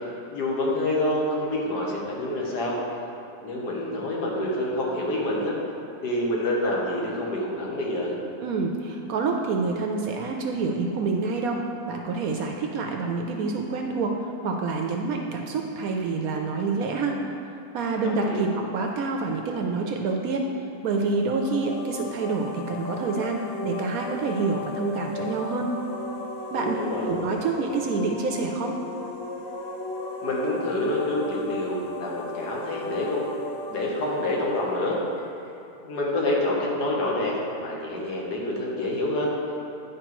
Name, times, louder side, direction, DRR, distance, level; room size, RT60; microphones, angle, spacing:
voice 1, 0.3-2.8 3.4-5.6 6.0-8.1 18.0-18.4 26.8-27.1 30.2-33.3 33.6-35.0 35.8-39.3, left 1 dB, 75° left, -3 dB, 1.6 m, -27 dB
voice 2, 8.4-11.6 11.9-17.2 17.7-20.5 20.8-25.7 26.5-26.8 27.0-28.8, right 4 dB, 70° right, 2 dB, 0.9 m, -27 dB
sound 1, 21.0-35.7, left 2 dB, 60° left, 0.7 m, -36 dB
9.7 x 5.0 x 3.0 m, 2.9 s
omnidirectional pair, 1.8 m